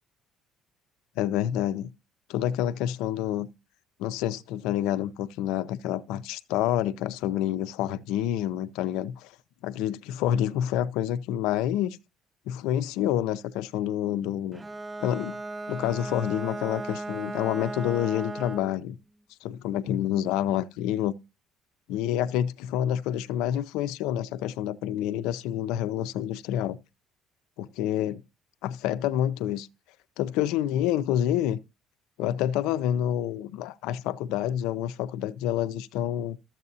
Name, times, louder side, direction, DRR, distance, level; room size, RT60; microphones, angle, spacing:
voice 1, 1.2-1.9 2.3-3.5 4.0-9.3 9.6-12.0 12.5-14.6 15.0-15.4 15.7-19.0 19.4-21.1 21.9-26.8 27.6-28.2 28.6-29.7 30.2-31.6 32.2-36.4, left 11 dB, 80° left, 0.4 m, -28 dB
Bowed string instrument, 14.5-18.8, right 2 dB, 25° right, 0.4 m, -36 dB
12.0 x 7.3 x 2.7 m
supercardioid pair, 80°, 0 cm